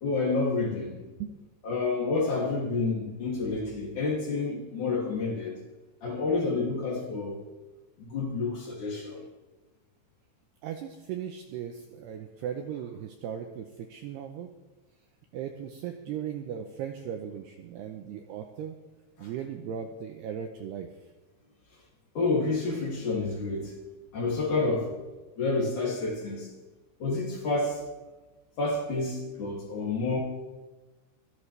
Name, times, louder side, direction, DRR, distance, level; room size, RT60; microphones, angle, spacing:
voice 1, 0.0-1.0 1.6-5.5 6.0-7.4 8.0-9.2 19.2-19.3 22.2-23.7 24.1-24.9 25.4-26.5 27.0-27.8 28.6-30.2, left 3 dB, 45° left, -3 dB, 3.5 m, -29 dB
voice 2, 10.6-14.5 15.3-18.8 19.2-20.9, right 8 dB, 80° right, 5 dB, 2.4 m, -37 dB
23.5 x 15.5 x 3.4 m, 1.2 s
omnidirectional pair, 5.7 m